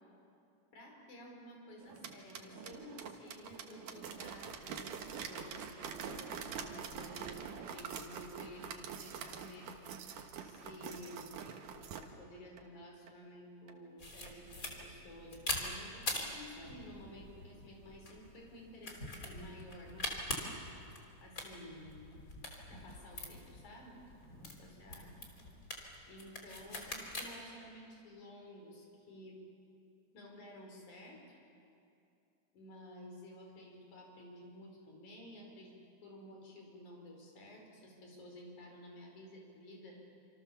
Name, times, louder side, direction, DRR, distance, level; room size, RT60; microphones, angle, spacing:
voice 1, 0.7-4.9 5.3-9.7 10.4-11.4 11.7-11.9 12.2-20.6 21.2-22.0 22.7-24.2 24.6-25.1 26.0-29.4 30.1-31.4 32.5-35.7 36.0-40.0, equal, 60° left, 0 dB, 6.3 m, -53 dB
sound 1, 1.8-12.1 12.6-12.7 13.1-13.2 13.7-13.8 14.3-14.4 14.8-14.9, right 7 dB, 75° right, 3.0 m, -45 dB
sound 2, 14.0-27.3, left 1 dB, 25° left, 3.3 m, -44 dB
27.0 x 27.0 x 7.0 m, 2.6 s
omnidirectional pair, 3.8 m